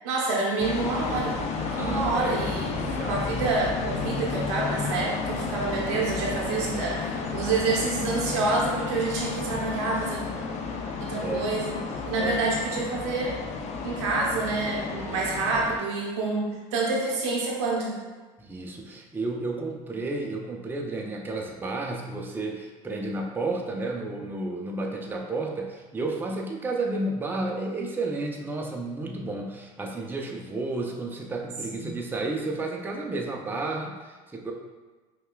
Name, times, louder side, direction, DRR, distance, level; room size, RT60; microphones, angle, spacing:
voice 1, 0.0-1.4 1.8-10.2 11.0-13.4 13.8-18.0 31.8-31.9, right 3 dB, 90° right, -3 dB, 0.6 m, -28 dB
sound 1, 0.6-15.8, left 4 dB, 50° left, 0.4 m, -32 dB
voice 2, 1.7-2.4 2.7-3.1 9.5-9.6 11.2-11.5 12.1-12.4 14.9-15.2 18.4-34.5, right 2 dB, 15° right, 0 dB, 0.5 m, -32 dB
5.3 x 2.3 x 2.2 m, 1.3 s
supercardioid pair, 90°, 14 cm